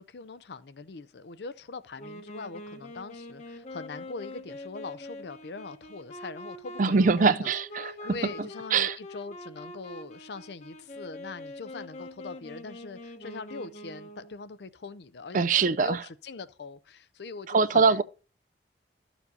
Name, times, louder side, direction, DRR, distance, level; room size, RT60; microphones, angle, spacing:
voice 1, 0.0-7.5 7.8-18.0, left 4 dB, 70° left, 0.5 m, -42 dB
Wind instrument woodwind instrument, 2.0-14.4, left 1 dB, 45° left, 1.1 m, -44 dB
voice 2, 6.8-8.2 8.7-9.0 15.3-16.0 17.5-18.0, right 4 dB, 45° right, 0.4 m, -23 dB
13.5 x 7.1 x 2.7 m
head